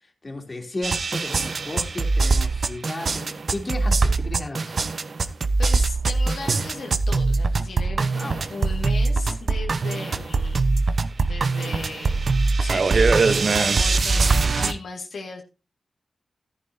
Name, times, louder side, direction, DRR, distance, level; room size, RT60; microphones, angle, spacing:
voice 1, 0.0-4.8 8.2-8.5 10.0-10.2, left 2 dB, 35° left, 2 dB, 3.1 m, -34 dB
sound 1, 0.8-14.7, right 3 dB, 65° right, 1.0 m, -22 dB
voice 2, 5.6-10.7 11.2-12.3 12.6-15.4, left 4 dB, 85° left, 1 dB, 2.0 m, -37 dB
14.0 x 11.0 x 2.8 m, 0.28 s
cardioid pair, 65°, 0 cm